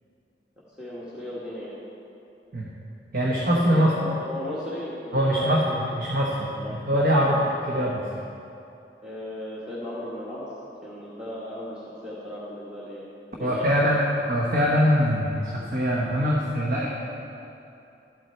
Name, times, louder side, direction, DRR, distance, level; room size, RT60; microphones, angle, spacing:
voice 1, 0.8-1.7 3.7-6.0 6.6-6.8 7.2-7.4 9.0-10.5 10.8-13.1 13.3-13.9, left 1 dB, 5° right, -9 dB, 1.4 m, -36 dB
voice 2, 3.1-3.9 5.1-5.6 6.0-8.0 13.4-16.9, equal, 55° right, -4 dB, 1.1 m, -23 dB
12.5 x 8.2 x 4.4 m, 2.7 s
head